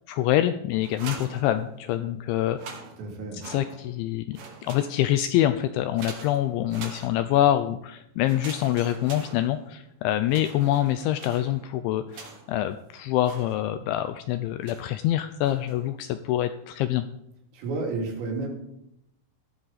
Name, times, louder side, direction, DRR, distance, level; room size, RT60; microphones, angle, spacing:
voice 1, 0.1-2.6 3.4-17.1, left 12 dB, 85° left, 10 dB, 2.7 m, -25 dB
sound 1, 0.8-2.0 2.4-4.0 4.3-5.3 6.0-7.5 8.2-9.9 10.3-12.7 13.2-14.0 14.6-15.0 15.4-15.9, right 4 dB, 55° right, 3.2 m, -44 dB
voice 2, 3.0-3.4 17.5-18.5, right 3 dB, 80° right, 0 dB, 5.5 m, -31 dB
17.0 x 13.0 x 4.1 m, 0.79 s
omnidirectional pair, 5.8 m